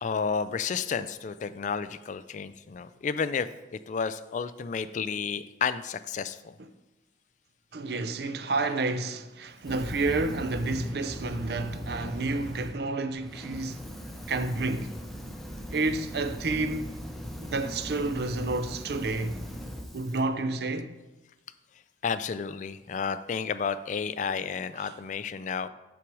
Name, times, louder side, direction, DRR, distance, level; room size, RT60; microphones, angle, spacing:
voice 1, 0.0-6.6 22.0-25.7, left 6 dB, 45° left, 0.3 m, -31 dB
voice 2, 7.7-13.8 14.3-14.9 15.7-16.9 17.5-19.4 19.9-21.0 24.8-24.9, right 3 dB, 60° right, 0.6 m, -30 dB
Fire, 9.6-12.7 13.2-20.2, equal, ahead, 0.7 m, -39 dB
7.4 x 5.9 x 4.8 m
head